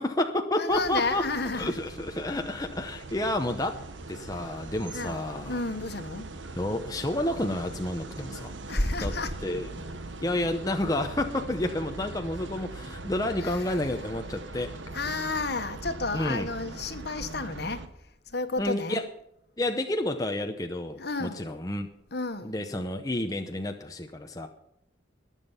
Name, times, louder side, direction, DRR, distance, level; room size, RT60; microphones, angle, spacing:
voice 1, 0.0-1.2 1.5-3.8 4.1-5.6 6.6-8.5 9.0-9.1 9.4-9.7 10.2-14.8 16.1-16.5 18.6-19.1 19.6-21.9 22.4-24.5, left 1 dB, 20° left, 0.8 m, -30 dB
voice 2, 0.6-1.7 4.2-4.3 4.9-6.3 8.7-9.3 13.4-13.6 14.9-17.8 18.3-19.0 21.0-21.5 22.1-22.6, left 3 dB, 55° left, 1.4 m, -31 dB
sound 1, 0.7-17.9, right 2 dB, 75° right, 1.4 m, -41 dB
20.5 x 7.4 x 5.7 m
head